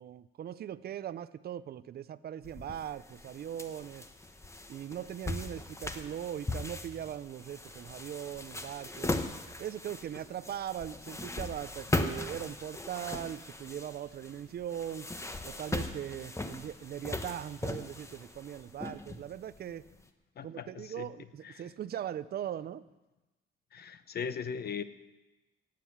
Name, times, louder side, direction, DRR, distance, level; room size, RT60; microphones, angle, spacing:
voice 1, 0.0-4.1 4.7-9.1 9.6-15.1 15.4-19.8 20.4-22.8, right 10 dB, 50° right, 16 dB, 0.5 m, -40 dB
sound 1, 2.4-19.9, left 2 dB, 15° left, 1.1 m, -39 dB
voice 2, 20.4-21.1 21.4-21.5 23.7-24.8, left 6 dB, 55° left, 13 dB, 0.9 m, -38 dB
17.5 x 7.6 x 7.2 m, 1.1 s
cardioid pair, 90°, 20 cm